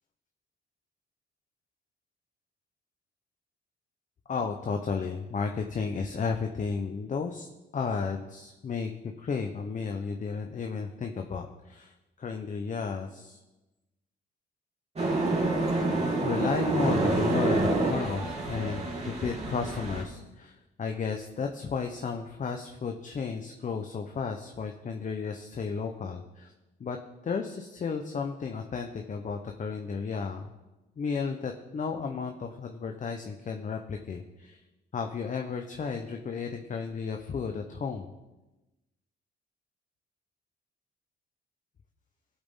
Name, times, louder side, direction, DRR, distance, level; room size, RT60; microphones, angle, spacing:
voice 1, 4.3-7.5 7.7-8.9 9.2-11.9 12.2-13.4 16.2-26.5 26.8-27.0 27.2-30.5 31.0-34.6 34.9-38.1, left 5 dB, 40° left, 4 dB, 0.9 m, -33 dB
sound 1, 15.0-20.0, right 2 dB, 30° right, 3.2 m, -27 dB
17.0 x 8.2 x 3.8 m, 1.1 s
cardioid pair, 90°, 20 cm